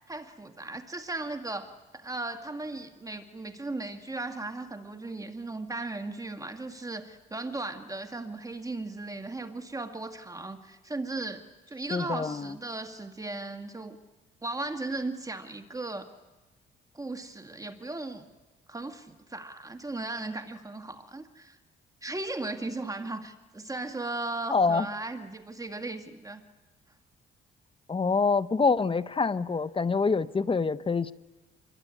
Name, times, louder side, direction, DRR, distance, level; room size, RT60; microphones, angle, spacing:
voice 1, 0.1-11.4 11.7-14.0 14.4-16.1 16.9-18.2 18.7-21.6 22.0-26.4, right 2 dB, 15° right, 7 dB, 1.7 m, -37 dB
voice 2, 11.9-12.5 24.5-24.9 27.9-31.1, left 4 dB, 25° left, 15 dB, 0.9 m, -26 dB
26.5 x 22.5 x 9.7 m, 1.2 s
cardioid pair, 90°, 20 cm